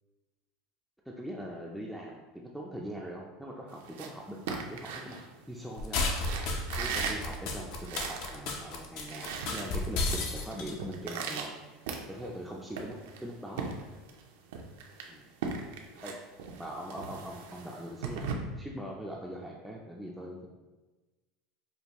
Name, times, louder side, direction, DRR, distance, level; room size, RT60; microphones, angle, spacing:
voice 1, 1.1-6.1 6.8-11.5 12.1-13.7 15.1-15.2 16.0-16.2 16.6-18.3 18.6-20.5, equal, ahead, -2 dB, 0.3 m, -41 dB
sound 1, 3.7-5.8 6.2-8.4 8.7-8.8 9.0-10.2 10.5-12.4 12.8-14.2 14.5-18.3, right 5 dB, 85° right, 0.5 m, -38 dB
sound 2, 5.8-10.7, left 2 dB, 60° left, 0.6 m, -32 dB
5.1 x 2.3 x 2.9 m, 1.2 s
supercardioid pair, 135°, 0 cm